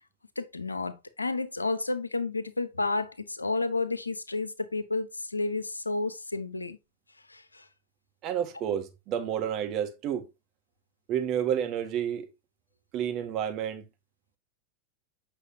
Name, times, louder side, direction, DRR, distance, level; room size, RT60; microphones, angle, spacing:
voice 1, 0.4-6.8 7.3-7.6, left 3 dB, 80° left, 1.0 m, -31 dB
voice 2, 8.2-10.3 11.1-12.3 12.9-13.8, right 9 dB, 35° right, 1.7 m, -30 dB
8.5 x 6.2 x 2.8 m
figure-of-eight pair, 90°, 0 cm